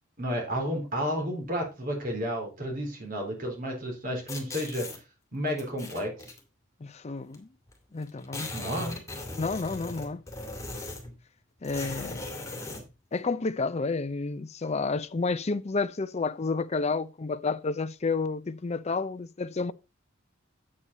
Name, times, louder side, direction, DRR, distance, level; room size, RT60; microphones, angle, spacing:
voice 1, 0.2-4.9 5.3-6.1 8.5-9.0, equal, 45° right, 3.8 m, -31 dB
sound 1, 4.3-5.0 5.6-6.4 7.3-7.4 7.7-7.8 8.0-11.2 11.6-12.9, left 2 dB, 15° left, 2.5 m, -38 dB
voice 2, 6.8-7.5 7.9-8.6 9.4-10.2 11.6-12.3 13.1-19.7, left 4 dB, 30° left, 0.5 m, -30 dB
8.7 x 8.4 x 4.1 m
head